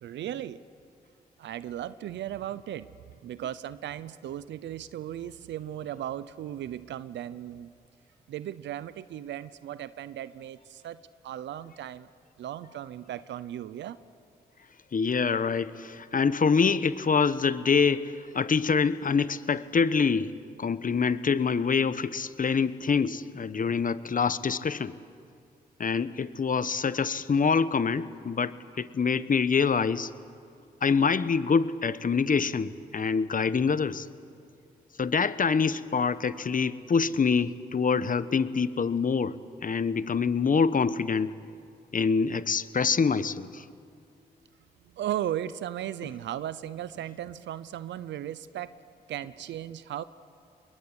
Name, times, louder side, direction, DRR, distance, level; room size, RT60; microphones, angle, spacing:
voice 1, 0.0-0.6 1.4-2.9 3.2-7.7 8.3-12.1 12.4-14.0 44.9-48.7 49.1-50.0, right 11 dB, 85° right, 16 dB, 0.7 m, -36 dB
voice 2, 14.9-20.3 20.6-24.9 25.8-30.1 30.8-34.1 35.0-41.3 41.9-43.6, left 5 dB, 50° left, 15 dB, 1.1 m, -25 dB
24.5 x 21.5 x 10.0 m, 2.4 s
supercardioid pair, 50°, 18 cm